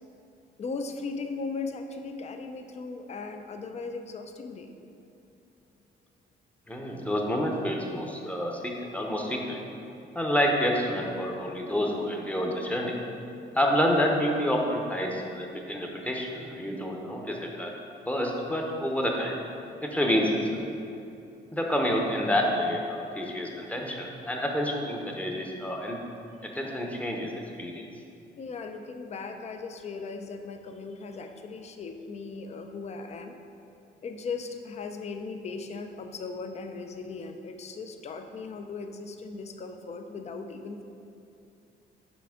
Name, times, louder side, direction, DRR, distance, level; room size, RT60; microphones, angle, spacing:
voice 1, 0.6-4.7 28.4-33.4 34.0-40.8, left 4 dB, 35° left, 6 dB, 0.4 m, -38 dB
voice 2, 6.7-9.6 10.1-12.9 13.5-17.7 18.1-19.3 19.8-20.4 21.5-26.0 26.4-27.3 27.6-27.8, equal, 5° left, 0 dB, 0.7 m, -28 dB
6.0 x 4.8 x 3.6 m, 2.7 s
cardioid pair, 90°, 20 cm